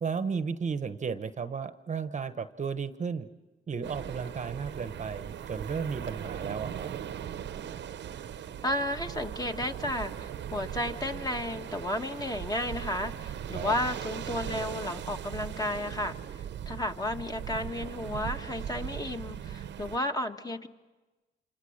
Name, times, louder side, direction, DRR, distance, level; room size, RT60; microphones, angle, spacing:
voice 1, 0.0-3.3 3.7-6.9 13.5-13.7, right 6 dB, 35° right, 11 dB, 1.0 m, -34 dB
sound 1, 3.8-20.0, right 9 dB, 65° right, 0.9 m, -39 dB
voice 2, 8.6-16.2 16.7-20.7, left 1 dB, 20° left, 5 dB, 1.5 m, -33 dB
27.5 x 26.5 x 6.5 m, 1.2 s
cardioid pair, 90°, 20 cm